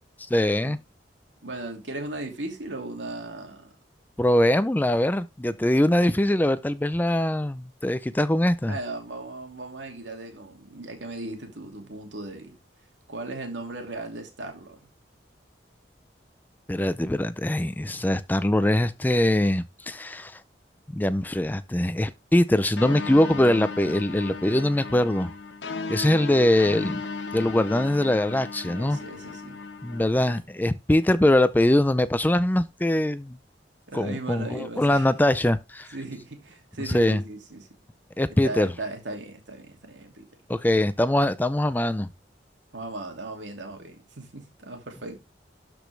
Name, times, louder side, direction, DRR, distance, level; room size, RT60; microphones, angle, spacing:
voice 1, 0.3-0.8 4.2-8.7 16.7-20.4 20.9-25.3 25.9-27.0 27.3-29.0 29.8-33.4 33.9-35.9 36.9-37.2 38.2-38.7 40.5-42.1, left 1 dB, 10° left, 0.4 m, -22 dB
voice 2, 1.4-3.7 8.7-12.6 13.1-14.9 28.7-29.6 33.9-35.1 35.9-37.7 38.4-40.7 42.7-45.2, right 2 dB, 85° right, 2.6 m, -37 dB
sound 1, 22.8-30.4, left 4 dB, 75° left, 1.0 m, -35 dB
12.5 x 5.1 x 3.3 m
head